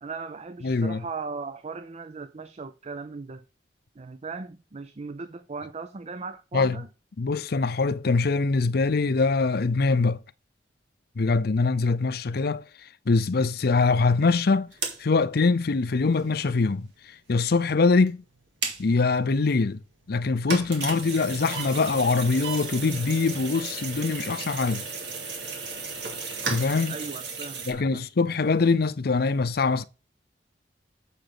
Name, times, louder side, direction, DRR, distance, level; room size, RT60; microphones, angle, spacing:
voice 1, 0.0-3.4 4.0-6.9 26.9-28.0, right 4 dB, 40° right, 0.5 m, -38 dB
voice 2, 0.6-1.0 6.5-6.8 7.2-10.2 11.2-12.6 13.1-14.7 15.0-16.9 17.3-18.2 18.8-19.8 20.1-24.8 26.5-26.9 27.7-29.8, left 4 dB, 60° left, 0.6 m, -23 dB
sound 1, 13.8-13.9 14.1-14.2 14.6-17.0 17.3-17.6 17.8-19.0 19.4-19.5 19.9-27.7, right 4 dB, 70° right, 2.5 m, -34 dB
7.5 x 6.9 x 3.9 m
head